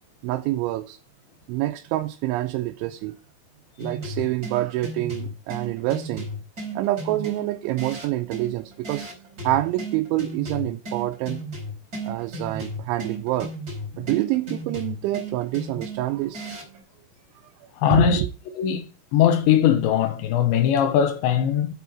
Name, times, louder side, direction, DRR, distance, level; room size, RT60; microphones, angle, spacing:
voice 1, 0.2-1.0 1.5-3.1 3.8-6.3 6.8-9.1 9.4-11.4 12.0-13.5 14.0-16.4 17.9-18.3, right 16 dB, 90° right, 3.1 m, -26 dB
sound 1, 3.8-16.8, right 1 dB, 20° right, 4.0 m, -35 dB
voice 2, 17.8-18.2 18.6-18.8 19.1-21.7, left 9 dB, 80° left, 3.4 m, -20 dB
8.3 x 8.2 x 4.4 m
omnidirectional pair, 5.3 m